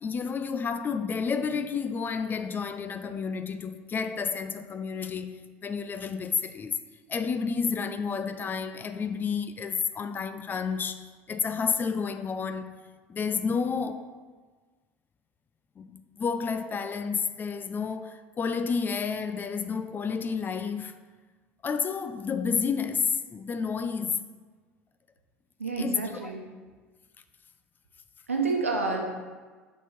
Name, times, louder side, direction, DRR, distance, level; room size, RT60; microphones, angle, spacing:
voice 1, 0.0-6.8 7.1-11.0 11.3-12.7 13.1-14.1 15.8-20.9 21.6-24.2 25.8-26.3, left 5 dB, 25° left, 0.5 m, -30 dB
voice 2, 25.6-26.4 28.3-29.1, right 4 dB, 85° right, 1.0 m, -28 dB
6.0 x 5.7 x 4.2 m
figure-of-eight pair, 70°, 7 cm